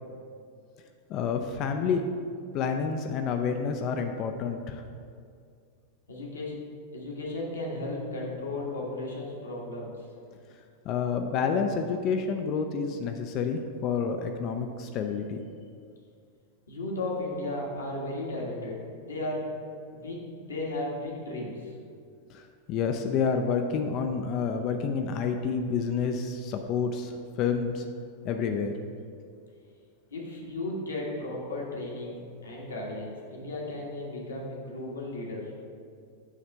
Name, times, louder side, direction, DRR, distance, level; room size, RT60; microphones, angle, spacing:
voice 1, 1.1-2.0 2.5-4.8 10.9-15.4 22.7-27.1 27.4-27.8 28.2-28.7, left 6 dB, 40° left, 6 dB, 0.4 m, -29 dB
voice 2, 6.1-6.6 6.9-9.9 16.7-19.5 19.9-21.8 30.1-35.5, left 2 dB, 70° left, -3 dB, 1.4 m, -35 dB
7.3 x 3.3 x 5.4 m, 2.3 s
figure-of-eight pair, 90°, 0 cm